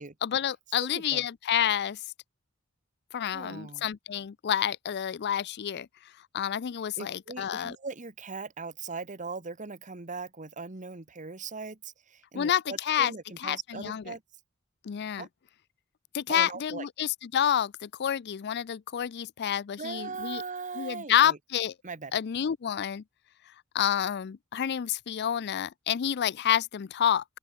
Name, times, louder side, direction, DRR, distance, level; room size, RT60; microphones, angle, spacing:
voice 1, 0.0-2.0 3.1-5.9 6.3-7.8 12.3-13.1 13.4-14.1 14.8-15.3 16.1-20.4 20.8-21.7 22.1-23.0 23.7-27.2, left 9 dB, 50° left, 0.4 m, -29 dB
voice 2, 3.3-3.9 7.0-14.2 15.2-15.3 16.3-16.9 19.8-21.4 21.8-22.1, right 4 dB, 35° right, 1.3 m, -39 dB
open air
head